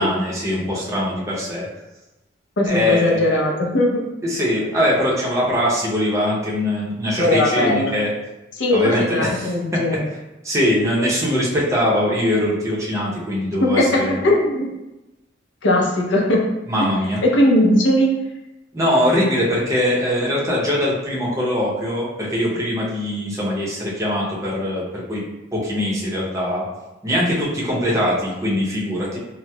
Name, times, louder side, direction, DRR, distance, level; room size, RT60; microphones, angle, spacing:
voice 1, 0.0-1.7 2.6-3.4 4.2-8.1 8.7-9.8 10.4-14.2 16.7-17.2 18.7-25.2 25.5-26.7 27.0-29.2, left 1 dB, 15° right, -5 dB, 0.7 m, -22 dB
voice 2, 2.6-4.0 7.2-7.9 8.6-10.1 13.6-14.7 15.6-16.4 17.2-18.1, left 1 dB, 70° left, -1 dB, 0.6 m, -18 dB
4.2 x 2.0 x 2.2 m, 0.98 s
head